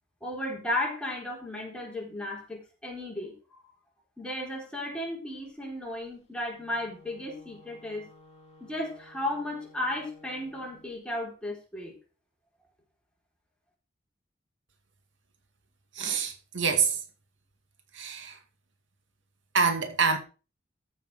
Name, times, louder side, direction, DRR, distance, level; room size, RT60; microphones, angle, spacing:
voice 1, 0.2-3.3 4.2-8.1 8.6-11.9, left 1 dB, 5° left, 4.4 m, -34 dB
Wind instrument woodwind instrument, 6.4-10.9, left 2 dB, 35° left, 2.4 m, -55 dB
voice 2, 15.9-17.0 17.9-18.4 19.5-20.2, right 5 dB, 85° right, 2.2 m, -26 dB
14.0 x 6.8 x 5.0 m
head